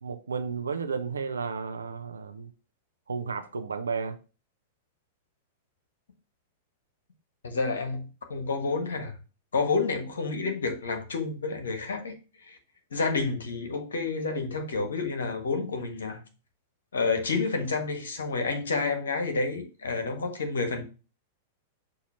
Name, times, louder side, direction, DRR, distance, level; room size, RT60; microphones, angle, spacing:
voice 1, 0.0-2.5 3.1-4.2, right 5 dB, 85° right, 0.6 m, -33 dB
voice 2, 7.4-9.1 9.5-12.2 12.5-12.6 12.9-16.2 16.9-20.8, left 4 dB, 75° left, 1.4 m, -29 dB
6.4 x 2.8 x 5.7 m
hypercardioid pair, 100°, 0 cm